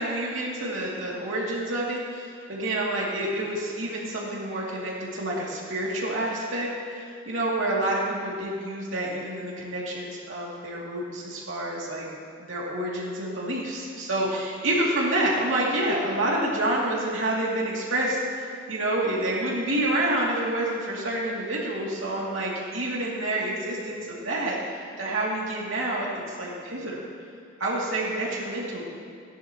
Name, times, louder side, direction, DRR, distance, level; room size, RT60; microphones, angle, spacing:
voice 1, 0.0-12.1 12.4-27.0 27.6-28.9, right 1 dB, 75° right, -4 dB, 2.6 m, -28 dB
15.5 x 11.0 x 3.0 m, 2.3 s
head